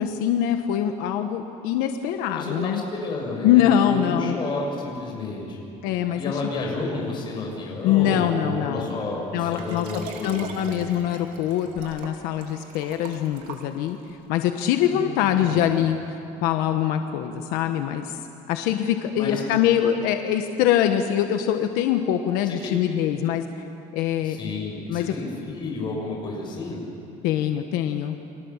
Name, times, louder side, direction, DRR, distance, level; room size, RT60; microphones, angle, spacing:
voice 1, 0.0-2.8 3.4-4.4 5.8-6.4 7.8-9.0 9.3-9.9 10.2-14.0 14.3-18.2 18.5-23.4 23.9-24.4 24.9-25.1 27.2-28.1, left 10 dB, 85° left, 6 dB, 1.3 m, -23 dB
voice 2, 2.3-5.6 6.2-10.9 14.9-15.7 19.2-19.4 22.5-22.8 24.2-26.8, left 3 dB, 30° left, -1 dB, 7.0 m, -31 dB
Liquid, 9.5-14.1 14.8-14.9, right 6 dB, 65° right, 3.3 m, -41 dB
30.0 x 24.5 x 7.3 m, 2.7 s
cardioid pair, 165°, 15 cm